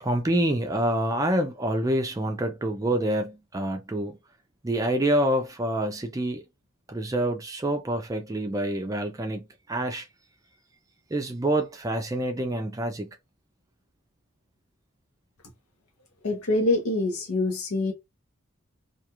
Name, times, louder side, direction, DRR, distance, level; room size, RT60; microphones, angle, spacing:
voice 1, 0.0-4.2 4.6-6.4 6.9-10.1 11.1-13.1, right 1 dB, 15° right, 0.3 m, -27 dB
voice 2, 16.2-17.9, left 2 dB, 90° left, 0.8 m, -25 dB
2.4 x 2.3 x 2.8 m
head